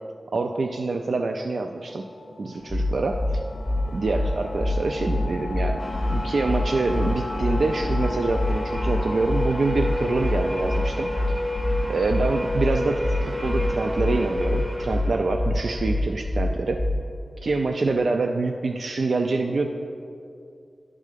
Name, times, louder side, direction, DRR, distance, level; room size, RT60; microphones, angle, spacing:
voice 1, 0.3-2.0 2.4-3.4 3.9-5.8 6.1-11.1 11.9-16.8 17.4-19.7, right 3 dB, 70° right, 4 dB, 0.4 m, -26 dB
sound 1, 1.9-15.4, left 4 dB, 45° left, 0.3 m, -38 dB
sound 2, 2.7-17.2, left 1 dB, 15° left, 0.6 m, -26 dB
sound 3, 5.8-16.4, equal, 25° right, 0.8 m, -32 dB
11.0 x 3.7 x 6.6 m, 2.5 s
wide cardioid pair, 110°, 0 cm